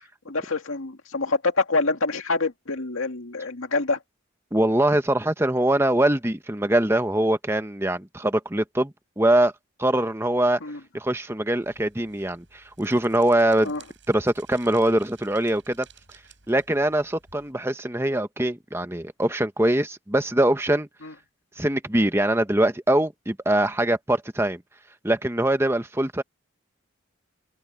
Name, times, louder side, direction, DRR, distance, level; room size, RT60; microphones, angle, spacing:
voice 1, 0.3-4.0 10.6-10.8 13.6-13.8 21.0-21.1, left 3 dB, 85° left, 2.2 m, -26 dB
voice 2, 4.5-9.5 9.8-10.6 10.9-13.7 14.1-15.9 16.5-20.9 21.6-24.6 25.0-26.2, right 1 dB, 10° right, 1.0 m, -23 dB
sound 1, 11.6-17.5, right 7 dB, 60° right, 7.8 m, -54 dB
head